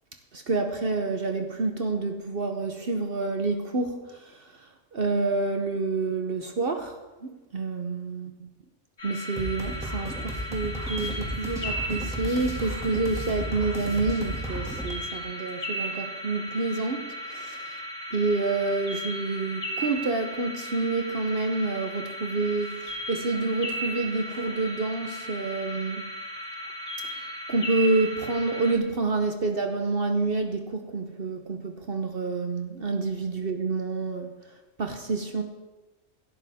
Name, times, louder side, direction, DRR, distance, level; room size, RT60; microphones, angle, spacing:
voice 1, 0.3-8.5 9.0-17.8 18.1-26.1 27.1-27.2 27.5-34.3 34.8-35.4, right 3 dB, 55° right, 5 dB, 1.1 m, -28 dB
sound 1, 9.0-28.7, equal, 70° left, 3.2 m, -36 dB
sound 2, 9.4-14.9, right 1 dB, ahead, 2.1 m, -34 dB
17.5 x 12.0 x 3.6 m, 1.1 s
omnidirectional pair, 1.2 m